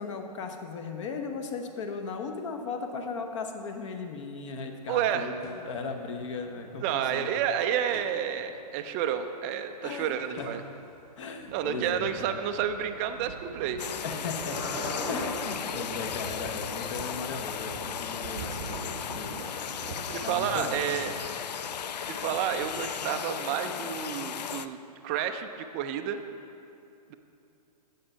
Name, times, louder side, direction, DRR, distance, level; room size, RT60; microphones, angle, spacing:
voice 1, 0.0-7.4 9.8-10.5 11.2-12.4 14.0-21.2, left 4 dB, 45° left, 5 dB, 0.9 m, -37 dB
voice 2, 4.9-5.3 6.8-10.6 11.5-13.8 20.1-21.1 22.0-24.8 25.0-26.2 27.1-27.2, right 9 dB, 20° right, 7 dB, 0.3 m, -30 dB
sound 1, 5.4-6.1 6.4-8.8 10.4-10.6 13.9-16.5 18.7-18.8, left 1 dB, 15° left, 1.0 m, -40 dB
Thunder, 10.8-23.1, right 5 dB, 50° right, 0.7 m, -45 dB
sound 2, 13.8-24.7, left 8 dB, 75° left, 0.5 m, -36 dB
8.7 x 6.7 x 5.5 m, 2.7 s
hypercardioid pair, 140°, 21 cm